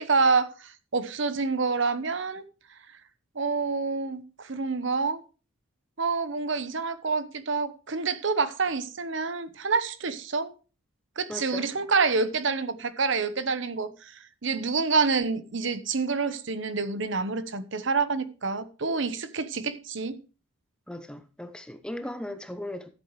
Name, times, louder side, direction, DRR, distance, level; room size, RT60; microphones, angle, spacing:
voice 1, 0.0-2.4 3.3-5.2 6.0-10.5 11.2-20.2, right 4 dB, 60° right, 0.9 m, -27 dB
voice 2, 11.3-11.7 20.9-22.9, left 1 dB, 5° left, 0.7 m, -37 dB
13.5 x 8.0 x 3.2 m
head